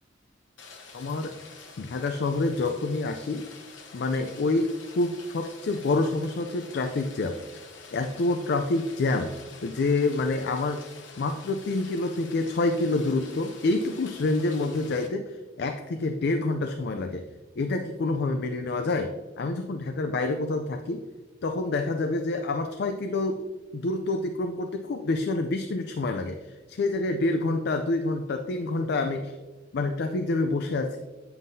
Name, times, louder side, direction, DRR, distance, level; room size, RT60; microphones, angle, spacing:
Rain, 0.6-15.1, left 4 dB, 80° left, 1.0 m, -48 dB
voice 1, 0.9-1.3 1.8-3.5 3.9-7.4 7.9-9.3 9.6-10.8 11.2-17.2 17.6-21.0 21.4-23.4 23.7-26.4 26.7-29.4 29.7-31.0, left 2 dB, 60° left, 6 dB, 0.4 m, -27 dB
9.2 x 5.5 x 2.7 m, 1.2 s
head